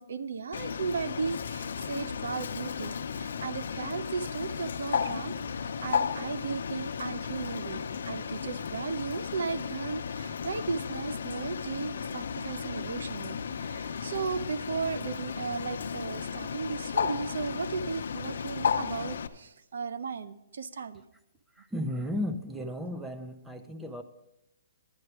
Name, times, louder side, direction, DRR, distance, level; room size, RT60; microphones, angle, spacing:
voice 1, 0.0-21.1, right 5 dB, 75° right, 13 dB, 0.7 m, -36 dB
Bird, 0.5-19.3, left 6 dB, 70° left, 0.7 m, -34 dB
voice 2, 21.6-24.0, left 1 dB, 5° right, 8 dB, 0.6 m, -34 dB
11.0 x 9.9 x 4.7 m, 0.85 s
hypercardioid pair, 170°, 0 cm